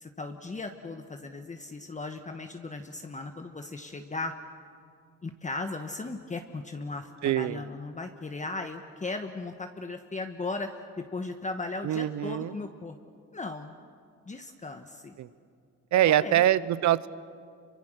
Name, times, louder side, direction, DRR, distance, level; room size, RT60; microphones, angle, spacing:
voice 1, 0.0-4.3 5.2-13.0 13.3-13.7 14.3-15.2 16.1-16.4, left 3 dB, 25° left, 6 dB, 1.2 m, -37 dB
voice 2, 7.2-7.6 11.8-12.5 15.2-15.3 15.9-17.1, right 12 dB, 70° right, 17 dB, 0.8 m, -24 dB
27.0 x 24.0 x 6.4 m, 2.3 s
cardioid pair, 90°, 30 cm